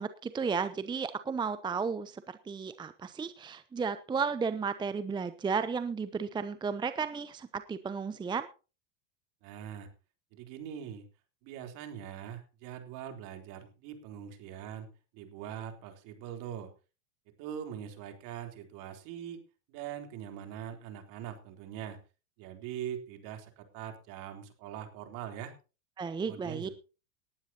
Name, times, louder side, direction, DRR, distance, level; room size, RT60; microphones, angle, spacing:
voice 1, 0.0-8.5 26.0-26.7, right 5 dB, 10° right, 12 dB, 0.7 m, -33 dB
voice 2, 9.4-9.9 10.3-11.1 11.4-14.9 15.1-16.7 17.4-19.4 19.7-22.0 22.4-25.5 26.2-26.7, right 9 dB, 55° right, 5 dB, 3.7 m, -42 dB
18.5 x 11.5 x 2.9 m, 0.32 s
supercardioid pair, 120°, 38 cm